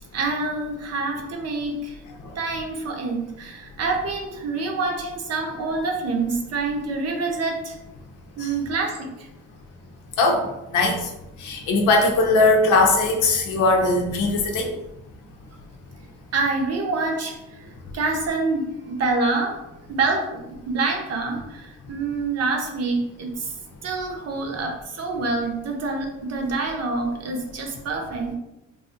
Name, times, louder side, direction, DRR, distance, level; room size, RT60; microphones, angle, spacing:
voice 1, 0.1-2.0 2.3-7.8 8.4-9.3 16.3-17.6 17.9-19.6 19.9-23.5 23.8-28.3, right 3 dB, 55° right, 2 dB, 0.8 m, -26 dB
voice 2, 10.7-11.1 11.4-14.7, left 2 dB, 90° left, 2 dB, 0.7 m, -19 dB
3.1 x 2.3 x 2.7 m, 0.90 s
cardioid pair, 90°, 30 cm